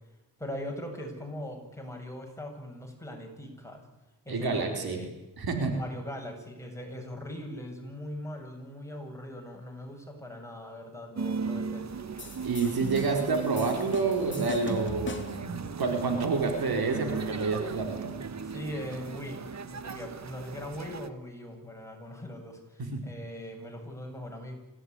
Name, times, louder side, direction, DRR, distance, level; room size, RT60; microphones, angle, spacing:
voice 1, 0.4-3.8 4.2-5.1 5.7-12.1 18.4-24.5, equal, 10° left, 1 dB, 8.0 m, -40 dB
voice 2, 4.3-5.0 5.4-5.8 12.4-18.1 22.8-23.0, right 4 dB, 75° right, 4 dB, 4.4 m, -29 dB
sound 1, 11.2-21.1, right 5 dB, 45° right, 1.4 m, -37 dB
sound 2, 12.2-15.5, left 4 dB, 30° left, 3.0 m, -41 dB
26.5 x 17.0 x 9.8 m, 1.0 s
cardioid pair, 85°, 37 cm